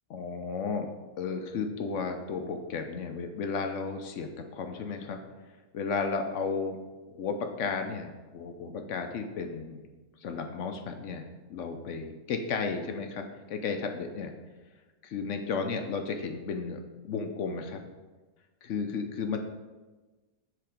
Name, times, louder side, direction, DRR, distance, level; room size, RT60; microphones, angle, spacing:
voice 1, 0.1-0.9 1.2-5.2 5.7-6.8 7.1-9.9 10.2-14.3 15.0-17.8 18.6-19.4, left 5 dB, 65° left, 5 dB, 0.8 m, -33 dB
7.8 x 3.4 x 5.0 m, 1.2 s
omnidirectional pair, 1.7 m